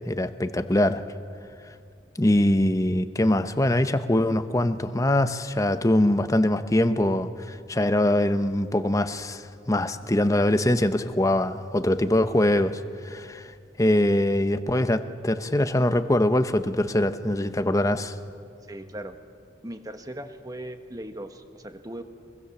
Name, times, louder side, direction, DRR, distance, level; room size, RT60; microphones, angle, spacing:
voice 1, 0.1-1.0 2.2-13.5 13.8-18.1, left 1 dB, 15° left, 10 dB, 0.8 m, -23 dB
voice 2, 18.6-19.1 19.6-22.0, right 1 dB, 20° right, 7 dB, 1.3 m, -38 dB
24.0 x 23.0 x 7.2 m, 2.3 s
head